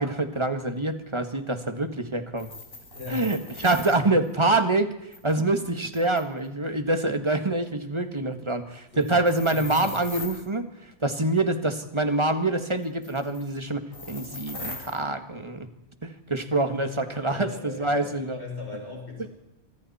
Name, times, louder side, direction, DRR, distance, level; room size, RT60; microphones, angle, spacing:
voice 1, 0.0-2.5 3.1-4.9 5.2-15.7 16.0-18.4, right 2 dB, 25° right, 8 dB, 1.8 m, -26 dB
sound 1, 2.3-4.0 5.1-6.5 9.0-10.5 12.8-13.5 13.9-15.0, left 2 dB, 60° left, 3.9 m, -40 dB
voice 2, 2.9-3.3 8.9-9.2 9.5-10.0 17.2-19.3, left 3 dB, 85° left, 0 dB, 5.8 m, -39 dB
26.5 x 25.0 x 4.3 m, 0.90 s
omnidirectional pair, 1.1 m